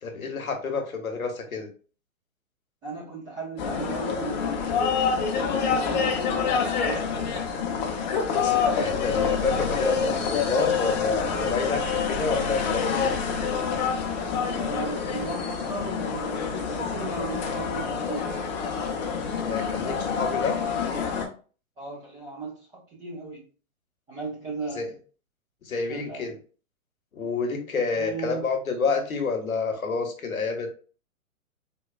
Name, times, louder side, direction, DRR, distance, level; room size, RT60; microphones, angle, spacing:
voice 1, 0.0-1.7 8.7-13.2 19.5-20.6 24.7-24.9 25.7-26.4 27.1-30.7, left 4 dB, 85° left, 4 dB, 0.9 m, -29 dB
voice 2, 2.8-4.8 5.4-7.3 14.5-18.3 21.8-23.4 24.1-24.9 25.9-26.2 27.9-28.4, right 4 dB, 10° right, -6 dB, 0.4 m, -37 dB
sound 1, 3.6-21.3, left 6 dB, 35° left, 0.6 m, -27 dB
3.9 x 2.3 x 2.2 m, 0.38 s
figure-of-eight pair, 120°, 41 cm